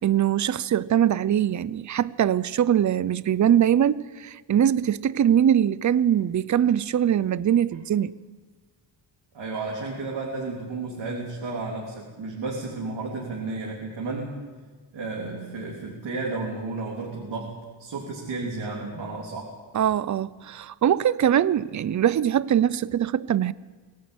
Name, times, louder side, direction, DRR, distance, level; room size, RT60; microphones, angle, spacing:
voice 1, 0.0-8.1 19.7-23.5, right 10 dB, 40° right, 0.6 m, -22 dB
voice 2, 9.3-14.3 14.9-17.5 17.8-19.5, right 3 dB, 70° right, 3.7 m, -32 dB
23.0 x 17.0 x 8.6 m
wide cardioid pair, 130°, 45 cm